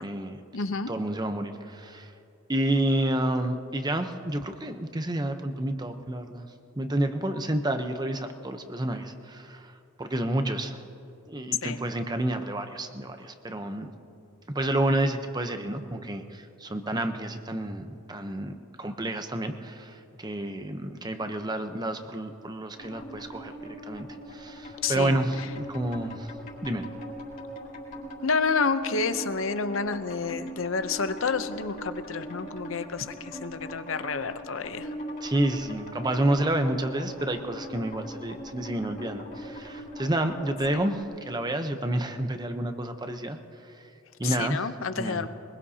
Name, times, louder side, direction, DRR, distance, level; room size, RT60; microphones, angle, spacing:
voice 1, 0.0-0.4 0.9-2.1 2.5-6.5 6.8-9.7 10.0-10.8 11.3-13.9 14.5-26.3 26.6-26.9 35.2-43.7 44.2-44.6 45.0-45.3, right 1 dB, 20° right, 7 dB, 0.8 m, -29 dB
voice 2, 0.5-0.9 11.6-11.8 24.8-25.2 28.2-34.9 40.7-40.8 44.2-45.3, left 4 dB, 70° left, 10 dB, 0.7 m, -29 dB
sound 1, 22.8-41.0, equal, 45° left, 4.0 m, -40 dB
22.5 x 21.5 x 2.8 m, 2.7 s
head